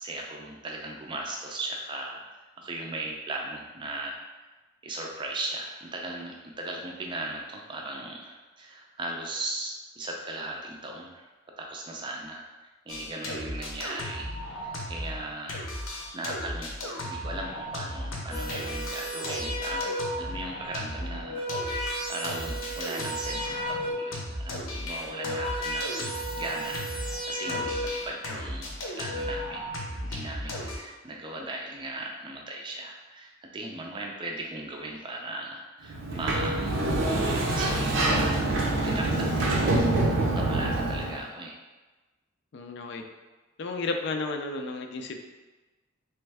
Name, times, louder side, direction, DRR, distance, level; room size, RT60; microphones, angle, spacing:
voice 1, 0.0-2.2 2.6-4.4 4.8-21.6 22.1-29.7 30.0-41.6, right 2 dB, 25° right, 0 dB, 0.4 m, -38 dB
sound 1, 12.9-15.2 15.5-27.2 27.5-30.8, left 1 dB, 90° left, 0.8 m, -36 dB
sound 2, 18.3-20.3 21.0-24.2 24.9-28.1 28.9-29.3, equal, 30° left, 0.7 m, -34 dB
Sliding door, 35.9-41.2, right 2 dB, 70° right, 0.6 m, -25 dB
voice 2, 42.5-43.0 43.6-45.2, left 3 dB, 60° left, 5 dB, 0.4 m, -33 dB
3.4 x 3.1 x 3.4 m, 1.2 s
head